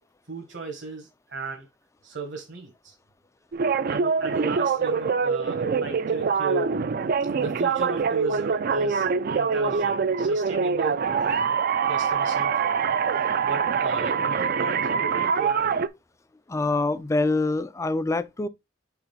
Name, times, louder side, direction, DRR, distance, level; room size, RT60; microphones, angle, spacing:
voice 1, 0.3-1.7 2.0-2.9 3.9-6.7 7.4-9.0 9.3-11.5 11.9-12.7 13.4-15.7, right 4 dB, 65° right, 1.2 m, -35 dB
sound 1, 3.5-15.9, right 5 dB, 50° right, 0.4 m, -24 dB
voice 2, 16.5-18.5, left 2 dB, 15° left, 0.3 m, -25 dB
4.9 x 3.8 x 5.1 m
head